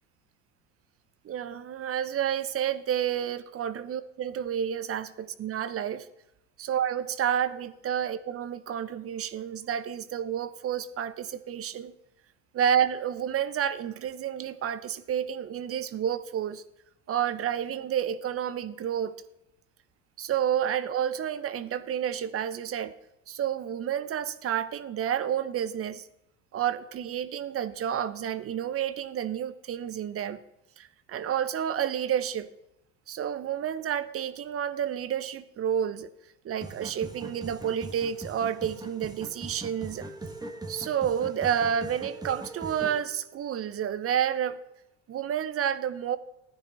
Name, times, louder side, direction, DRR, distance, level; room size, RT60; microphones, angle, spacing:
voice 1, 1.2-6.1 6.6-11.9 12.5-16.6 17.1-19.2 20.2-22.9 23.3-26.1 26.5-30.4 30.8-32.5 33.1-36.1 36.4-40.1 40.7-44.6 45.1-46.2, right 9 dB, 35° right, 14 dB, 1.0 m, -30 dB
sound 1, 36.6-43.0, right 2 dB, 10° right, 1.9 m, -41 dB
15.5 x 10.0 x 4.1 m, 0.86 s
hypercardioid pair, 75°, 38 cm